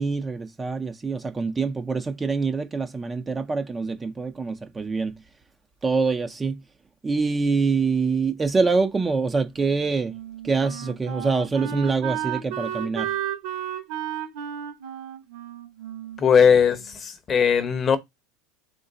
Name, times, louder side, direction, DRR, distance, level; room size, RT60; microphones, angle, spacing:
voice 1, 0.0-5.2 5.8-6.6 7.0-10.1 10.4-13.1, right 4 dB, 15° right, 0.4 m, -25 dB
Wind instrument woodwind instrument, 9.6-16.9, right 10 dB, 60° right, 1.2 m, -33 dB
voice 2, 16.2-18.0, left 7 dB, 25° left, 0.7 m, -19 dB
3.7 x 3.1 x 3.9 m
supercardioid pair, 150°, 0 cm